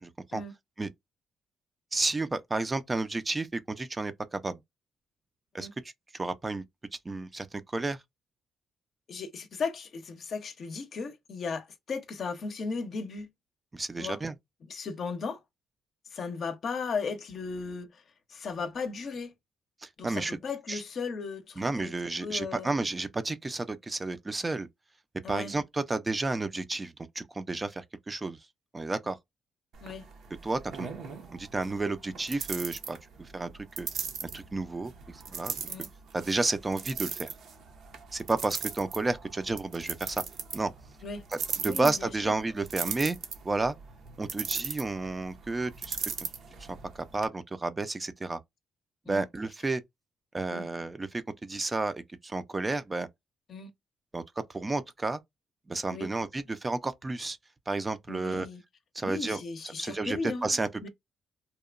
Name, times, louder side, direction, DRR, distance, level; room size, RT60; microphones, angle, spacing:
voice 1, 0.0-0.4 0.8-0.9 1.9-4.6 5.5-5.7 6.2-6.6 7.1-8.0 13.7-14.3 19.8-20.4 20.7-20.8 21.6-24.7 25.3-28.4 28.7-29.2 30.4-30.9 31.3-33.0 33.3-33.5 33.8-33.9 34.2-34.9 35.3-35.6 36.1-37.3 38.1-40.2 40.5-40.7 41.6-43.2 43.4-43.7 44.2-46.1 47.1-48.4 49.1-49.8 50.3-53.1 54.1-54.2 54.5-55.2 55.7-57.4 57.7-58.5 58.9-60.9, right 3 dB, 20° right, 0.4 m, -31 dB
voice 2, 9.1-13.3 14.0-14.2 14.7-15.4 16.1-17.9 18.3-19.3 20.0-21.9 22.2-22.7 25.2-25.5 29.8-30.0 35.7-35.9 41.0-41.2 41.6-42.3 49.1-49.3 50.5-50.7 53.5-53.7 55.9-56.1 58.1-58.6 59.0-60.5 60.8-60.9, left 4 dB, 55° left, 0.6 m, -36 dB
sound 1, 29.7-47.3, right 6 dB, 70° right, 0.7 m, -39 dB
2.8 x 2.1 x 2.4 m
cardioid pair, 90°, 0 cm